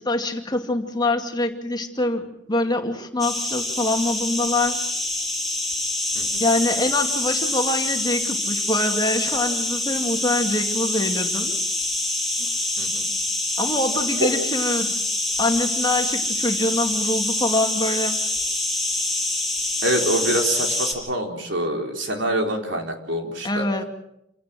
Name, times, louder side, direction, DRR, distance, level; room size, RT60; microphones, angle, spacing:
voice 1, 0.0-4.8 6.4-11.5 13.6-14.9 15.4-18.2 23.4-23.8, left 2 dB, 20° left, 4 dB, 2.4 m, -24 dB
sound 1, 3.2-20.9, left 2 dB, ahead, 7.6 m, -25 dB
voice 2, 19.8-23.6, right 1 dB, 65° right, 2 dB, 4.2 m, -25 dB
28.5 x 17.5 x 7.6 m, 0.82 s
head